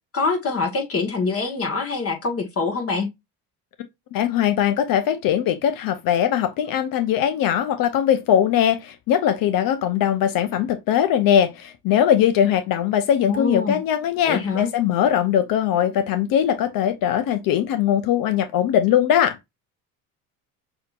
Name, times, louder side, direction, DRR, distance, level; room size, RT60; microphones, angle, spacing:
voice 1, 0.1-3.1 13.3-13.8 14.2-14.7, left 4 dB, 35° left, 1.6 m, -24 dB
voice 2, 4.1-19.4, left 10 dB, 60° left, 0.8 m, -20 dB
6.5 x 2.9 x 2.5 m
supercardioid pair, 95°, 38 cm